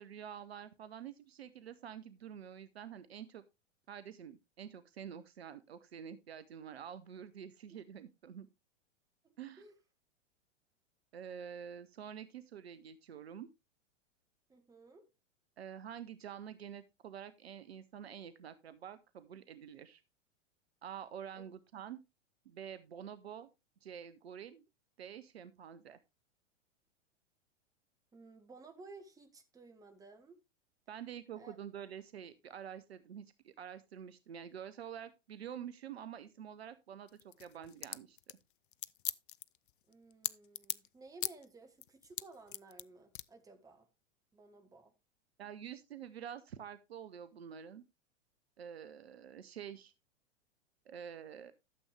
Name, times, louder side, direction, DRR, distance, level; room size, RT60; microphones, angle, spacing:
voice 1, 0.0-3.4 3.9-8.5 9.4-9.6 11.1-13.5 15.6-20.0 20.8-22.0 22.4-23.5 23.8-24.6 25.0-26.0 30.9-38.2 45.4-47.8 48.6-49.9 50.9-51.5, right 8 dB, 55° right, 0.8 m, -48 dB
voice 2, 9.2-9.7 14.5-15.0 21.3-21.4 28.1-30.4 31.4-31.6 39.9-43.9 44.3-44.9, right 3 dB, 10° right, 1.7 m, -56 dB
sound 1, 37.1-40.9 41.2-41.4 41.8-42.8 43.1-43.2, left 13 dB, 45° left, 0.5 m, -39 dB
12.5 x 7.1 x 3.3 m
figure-of-eight pair, 100°, 36 cm